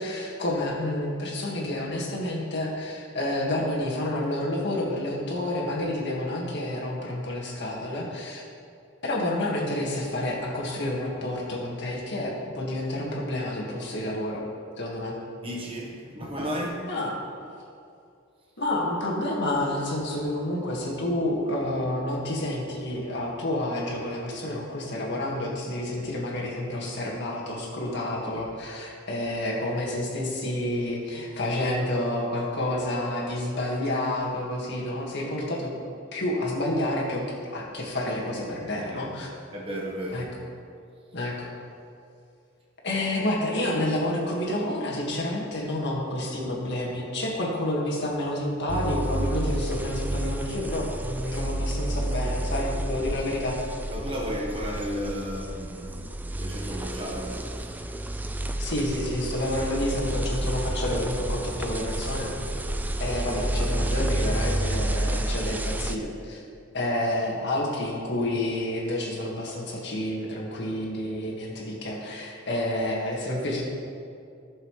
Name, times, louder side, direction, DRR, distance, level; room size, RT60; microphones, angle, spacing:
voice 1, 0.0-8.4 9.0-14.4 14.8-15.1 16.9-17.1 18.6-35.7 36.1-37.2 37.5-39.3 40.1-40.2 41.1-41.5 42.8-53.6 58.6-62.3 63.0-66.4 66.7-73.6, left 1 dB, 60° left, 1.8 m, -29 dB
voice 2, 15.4-16.9 38.8-39.1 39.5-40.3 53.9-56.0 56.3-57.8, equal, 30° right, 1.3 m, -33 dB
sound 1, 48.7-66.0, right 1 dB, 10° right, 0.3 m, -30 dB
15.0 x 6.6 x 3.2 m
head